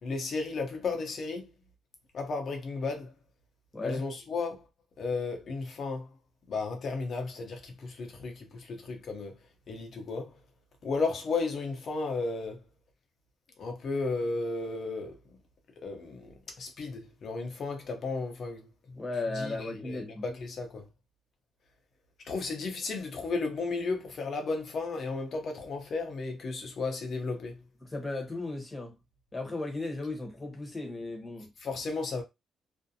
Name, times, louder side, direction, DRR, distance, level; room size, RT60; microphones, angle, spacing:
voice 1, 0.0-1.5 2.1-3.1 3.8-4.6 5.0-6.1 6.5-9.3 9.7-10.3 10.8-12.6 13.6-15.2 15.8-19.0 19.3-20.9 22.2-27.6 31.6-32.2, left 3 dB, 55° left, 0.8 m, -34 dB
voice 2, 3.7-4.0 18.9-20.2 27.8-29.0 29.3-31.5, left 2 dB, 20° left, 1.0 m, -36 dB
2.6 x 2.1 x 2.7 m
cardioid pair, 90°, 0 cm